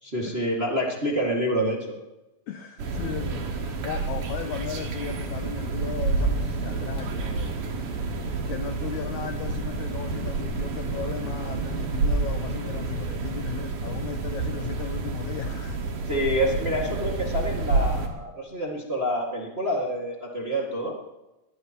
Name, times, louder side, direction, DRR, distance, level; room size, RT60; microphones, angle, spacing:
voice 1, 0.0-1.9 16.1-20.9, equal, 25° right, -2 dB, 1.4 m, -27 dB
voice 2, 2.5-7.5 8.5-15.8, left 9 dB, 85° left, 7 dB, 1.7 m, -36 dB
sound 1, 2.8-18.1, right 3 dB, 65° right, 3.2 m, -29 dB
22.5 x 17.5 x 3.0 m, 1.0 s
omnidirectional pair, 4.3 m